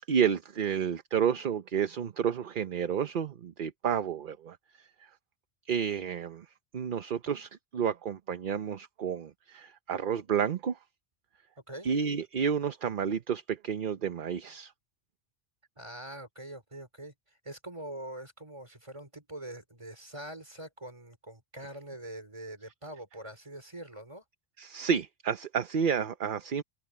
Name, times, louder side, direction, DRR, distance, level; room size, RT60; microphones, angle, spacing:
voice 1, 0.1-5.1 5.7-6.5 6.7-10.8 11.8-14.7 24.6-26.6, right 7 dB, 55° right, 0.9 m, -30 dB
voice 2, 15.8-17.1 17.4-24.2, right 1 dB, 30° right, 4.1 m, -44 dB
open air
omnidirectional pair, 1.1 m